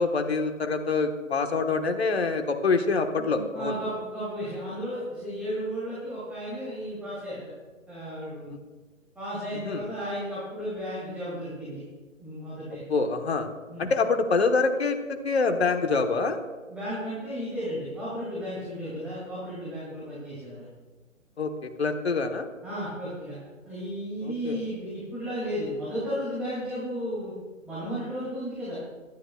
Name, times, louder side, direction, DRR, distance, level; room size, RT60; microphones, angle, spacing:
voice 1, 0.0-3.8 8.5-8.6 9.6-9.8 12.9-13.5 13.8-16.4 21.4-21.5 21.8-22.5 24.2-24.6, left 4 dB, 50° left, 6 dB, 1.3 m, -25 dB
voice 2, 3.2-7.4 7.9-8.5 9.2-11.8 12.2-12.8 13.7-13.9 16.7-20.7 22.6-23.4 23.6-27.3 27.6-28.7, equal, 5° right, -10 dB, 2.3 m, -34 dB
21.5 x 12.0 x 2.3 m, 1.3 s
figure-of-eight pair, 145°, 40 cm